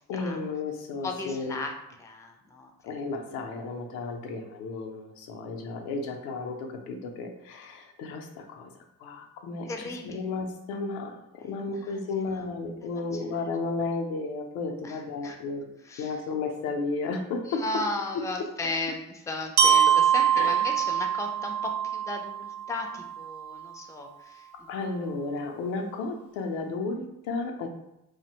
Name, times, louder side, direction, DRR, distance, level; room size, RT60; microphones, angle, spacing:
voice 1, 0.1-1.6 2.8-8.7 9.0-15.7 16.0-17.8 18.1-18.5 19.9-20.7 24.7-27.7, left 3 dB, 85° left, 3 dB, 0.5 m, -33 dB
voice 2, 1.0-1.7 2.0-3.0 9.7-10.2 11.4-12.0 12.8-13.2 14.8-15.4 15.8-16.2 17.4-24.7, left 2 dB, 10° left, 3 dB, 0.4 m, -36 dB
Glockenspiel, 19.6-23.5, right 8 dB, 55° right, 0.6 m, -24 dB
2.5 x 2.1 x 2.8 m, 0.85 s
supercardioid pair, 60°, 35 cm